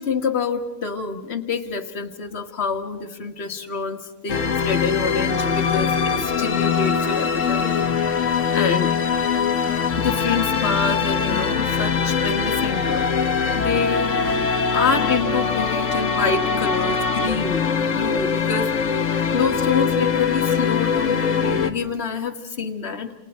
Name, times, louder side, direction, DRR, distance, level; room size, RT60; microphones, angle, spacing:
voice 1, 0.0-7.7 8.3-8.9 10.0-13.2 13.6-18.7 19.3-23.1, left 5 dB, 55° left, 4 dB, 1.8 m, -27 dB
sound 1, 4.3-21.7, left 6 dB, 90° left, 1.5 m, -22 dB
29.5 x 27.5 x 4.3 m, 1.0 s
omnidirectional pair, 1.3 m